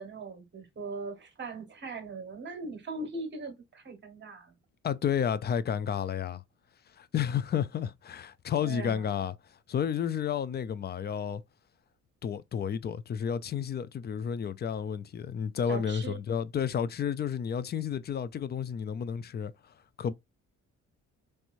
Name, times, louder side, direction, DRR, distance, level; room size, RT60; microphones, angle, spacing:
voice 1, 0.0-4.5 8.6-9.2 15.7-16.2, right 3 dB, 35° right, 1.4 m, -40 dB
voice 2, 4.8-6.4 7.0-9.3 9.7-11.4 12.2-19.5 20.0-20.1, left 8 dB, 35° left, 0.4 m, -31 dB
3.2 x 3.0 x 2.6 m
cardioid pair, 90°, 30 cm